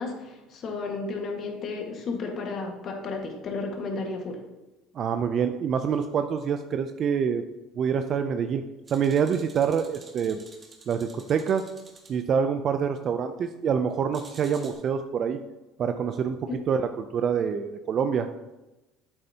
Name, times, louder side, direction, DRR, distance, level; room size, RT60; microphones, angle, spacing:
voice 1, 0.0-4.4 16.5-16.6, left 3 dB, 45° left, 2 dB, 1.6 m, -33 dB
voice 2, 4.9-7.4 7.8-8.6 8.9-10.4 10.9-11.7 12.1-15.4 15.8-18.3, right 7 dB, 45° right, 8 dB, 0.4 m, -26 dB
sound 1, 8.9-12.2 14.1-14.7, right 3 dB, 25° right, 1.5 m, -50 dB
8.8 x 7.8 x 2.9 m, 1.0 s
cardioid pair, 120°, 0 cm